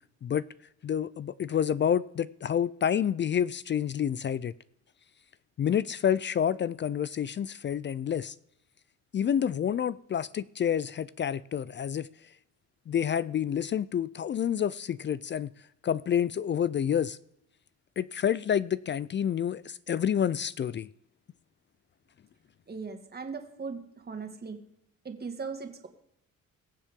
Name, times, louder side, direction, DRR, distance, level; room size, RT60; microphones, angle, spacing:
voice 1, 0.8-4.5 5.6-8.3 9.1-12.1 12.9-15.5 15.8-17.2 18.0-20.9, left 9 dB, 40° left, 0.4 m, -28 dB
voice 2, 22.7-24.6 25.0-25.9, right 5 dB, 30° right, 2.1 m, -38 dB
22.0 x 7.4 x 3.7 m
cardioid pair, 90°, 30 cm